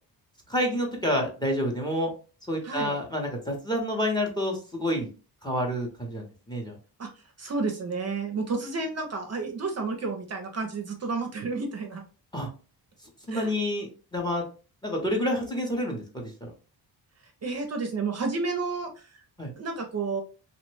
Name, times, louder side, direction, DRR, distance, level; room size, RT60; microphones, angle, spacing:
voice 1, 0.5-2.1 2.5-5.1 5.4-6.8 12.3-12.5 13.3-14.5 14.8-16.5 19.4-19.5, equal, 10° left, 1 dB, 0.6 m, -28 dB
voice 2, 2.6-3.0 7.0-7.1 7.4-12.0 13.3-13.5 17.4-19.2 19.6-20.2, right 4 dB, 40° right, 4 dB, 0.5 m, -31 dB
2.9 x 2.1 x 3.1 m, 0.36 s
wide cardioid pair, 165°, 41 cm